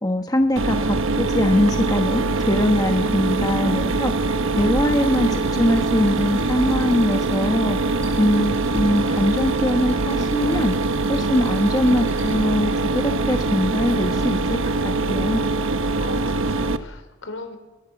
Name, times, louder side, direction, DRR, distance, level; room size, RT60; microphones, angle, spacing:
voice 1, 0.0-7.8 8.2-10.7 11.1-14.6 14.8-15.4, left 1 dB, 20° left, 4 dB, 1.3 m, -22 dB
Mechanisms, 0.6-16.8, right 3 dB, 80° right, 1.2 m, -23 dB
voice 2, 3.0-3.9 16.0-17.6, left 2 dB, 70° left, 7 dB, 4.1 m, -37 dB
sound 1, 4.6-12.3, right 1 dB, 15° right, 7.9 m, -41 dB
29.0 x 21.0 x 7.1 m, 1.1 s
head